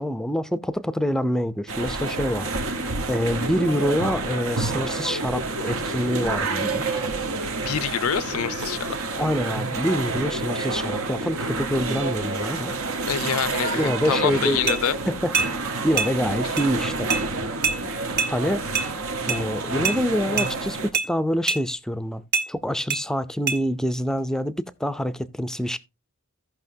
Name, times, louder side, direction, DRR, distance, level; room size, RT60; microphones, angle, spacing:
voice 1, 0.0-2.5 3.1-6.8 9.2-12.7 13.7-17.1 18.3-18.6 19.3-22.2 22.5-24.5 24.8-25.8, equal, 5° left, 0.5 m, -26 dB
sound 1, 1.7-20.9, right 3 dB, 75° right, 1.1 m, -28 dB
voice 2, 7.7-9.0 13.1-15.0, left 8 dB, 75° left, 0.5 m, -26 dB
sound 2, 14.7-14.8 15.3-15.5 16.0-16.1 16.6-16.7 17.1-17.2 17.6-17.8 18.2-18.3 18.7-18.9 19.3-19.4 19.8-20.0 20.4-20.5 20.9-21.1 21.5-21.6 22.3-22.5 22.9-23.0 23.5-23.6, right 5 dB, 50° right, 1.2 m, -24 dB
16.0 x 5.8 x 2.7 m
head